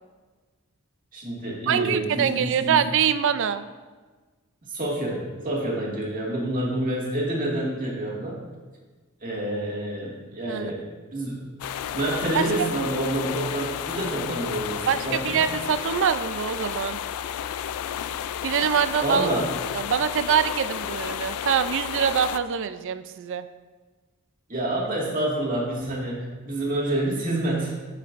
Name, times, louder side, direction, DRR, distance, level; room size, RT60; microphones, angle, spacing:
voice 1, 1.1-2.8 4.7-8.4 9.2-10.8 11.1-11.5 11.9-15.5 19.0-19.5 24.5-27.8, right 1 dB, 40° right, -3 dB, 1.9 m, -28 dB
voice 2, 1.7-3.7 10.5-10.7 12.3-12.7 14.9-17.0 18.4-19.3 19.7-23.5, right 7 dB, 60° right, 12 dB, 0.4 m, -24 dB
sound 1, 11.6-22.4, left 9 dB, 90° left, 0.3 m, -32 dB
13.0 x 5.6 x 2.5 m, 1.3 s
head